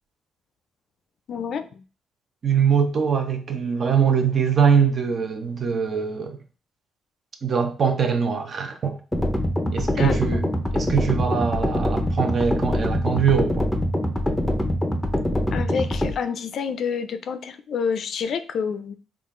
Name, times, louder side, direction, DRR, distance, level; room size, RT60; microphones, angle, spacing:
voice 1, 1.3-1.8 9.6-10.4 15.5-18.9, left 6 dB, 60° left, 0.4 m, -28 dB
voice 2, 2.4-6.4 7.4-9.0 9.7-10.5 10.7-13.7, right 6 dB, 45° right, 0.7 m, -22 dB
sound 1, 9.1-16.1, left 1 dB, 5° left, 0.6 m, -24 dB
3.7 x 2.4 x 3.6 m
cardioid pair, 90°, 0 cm